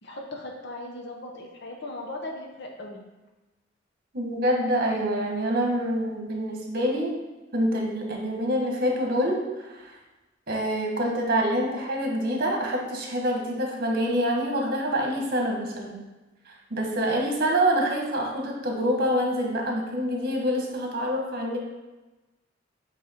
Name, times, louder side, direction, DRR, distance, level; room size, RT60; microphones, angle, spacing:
voice 1, 0.0-3.0, left 2 dB, 60° left, 1 dB, 0.8 m, -38 dB
voice 2, 4.1-7.2 7.5-9.4 9.7-9.9 10.5-16.0 16.5-21.6, equal, 50° right, 0 dB, 1.2 m, -26 dB
7.5 x 3.3 x 4.2 m, 1.1 s
head